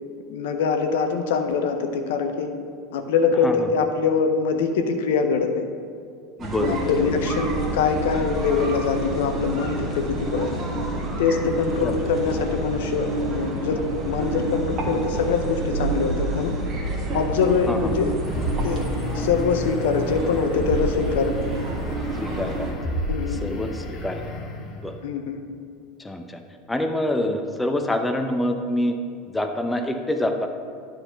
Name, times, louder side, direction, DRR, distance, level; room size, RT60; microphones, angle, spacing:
voice 1, 0.3-2.5 2.9-5.6 6.6-10.5 11.2-16.5 17.1-18.8 19.1-21.3 23.1-23.6 25.0-25.4, left 5 dB, 65° left, 6 dB, 0.6 m, -24 dB
voice 2, 6.4-7.2 11.8-12.0 17.7-17.9 22.2-22.9 23.3-24.3 24.7-25.0 26.0-26.4 26.7-29.0 29.3-30.5, left 1 dB, 10° left, 5 dB, 0.7 m, -26 dB
sound 1, 6.4-22.7, right 2 dB, 35° right, 1.6 m, -28 dB
sound 2, 18.2-25.0, left 1 dB, 40° left, 1.2 m, -31 dB
9.9 x 4.0 x 5.7 m, 2.2 s
figure-of-eight pair, 80°, 0 cm